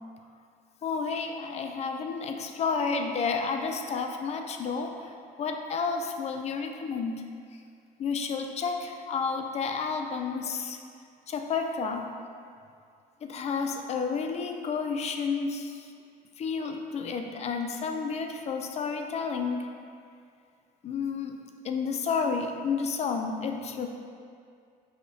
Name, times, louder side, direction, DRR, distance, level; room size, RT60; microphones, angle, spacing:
voice 1, 0.8-7.2 8.0-10.8 11.3-12.1 13.2-15.9 16.4-19.7 20.8-21.4 21.6-23.9, left 5 dB, 40° left, 5 dB, 0.4 m, -31 dB
5.8 x 2.8 x 2.6 m, 2.3 s
cardioid pair, 110°, 17 cm